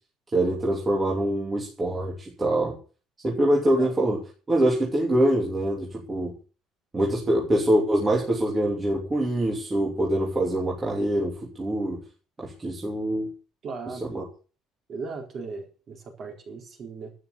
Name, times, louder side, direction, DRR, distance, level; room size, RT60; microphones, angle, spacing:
voice 1, 0.3-2.8 3.2-4.2 4.5-6.3 6.9-12.0 12.4-13.3 14.1-14.2, right 1 dB, 15° right, -2 dB, 3.0 m, -24 dB
voice 2, 13.6-14.0 14.9-17.1, right 4 dB, 35° right, 2 dB, 4.2 m, -37 dB
12.5 x 9.4 x 6.9 m, 0.37 s
cardioid pair, 175°, 0 cm